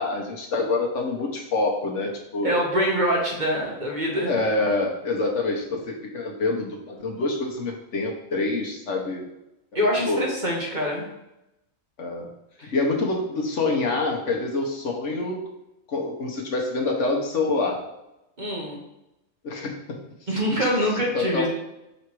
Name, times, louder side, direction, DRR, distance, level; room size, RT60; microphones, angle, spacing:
voice 1, 0.0-2.7 4.2-9.2 10.0-10.2 12.0-12.3 12.6-15.5 15.9-17.8 19.4-20.0 21.1-21.5, left 3 dB, 65° left, 1 dB, 1.3 m, -26 dB
voice 2, 2.4-4.3 9.7-11.1 12.6-12.7 18.4-18.8 20.3-21.5, equal, 35° right, -2 dB, 1.3 m, -24 dB
5.7 x 4.0 x 4.6 m, 0.91 s
omnidirectional pair, 1.4 m